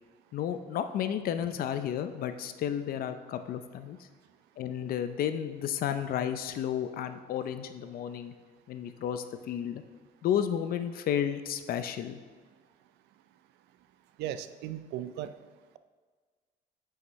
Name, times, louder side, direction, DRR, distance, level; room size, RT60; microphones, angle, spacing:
voice 1, 0.3-4.0 4.6-8.3 8.7-9.8 10.2-12.2, left 9 dB, 60° left, 9 dB, 0.5 m, -32 dB
voice 2, 14.2-15.3, right 11 dB, 85° right, 12 dB, 0.4 m, -36 dB
8.0 x 5.8 x 3.1 m, 1.5 s
cardioid pair, 110°, 17 cm